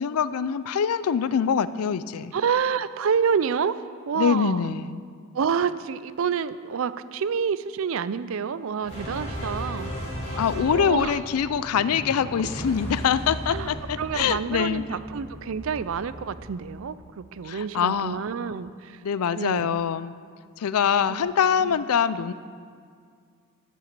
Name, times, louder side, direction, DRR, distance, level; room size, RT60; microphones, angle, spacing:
voice 1, 0.0-2.3 4.2-5.0 10.4-14.8 17.4-18.2 19.0-20.2 20.6-22.3, left 7 dB, 80° left, 15 dB, 0.4 m, -24 dB
voice 2, 2.3-4.7 5.3-9.9 10.7-11.2 13.5-13.7 14.0-19.0 19.4-19.8 21.1-21.3 21.6-21.8, right 6 dB, 65° right, 15 dB, 0.4 m, -28 dB
sound 1, 8.8-17.4, equal, 30° left, 3.2 m, -36 dB
11.0 x 7.8 x 6.7 m, 2.1 s
head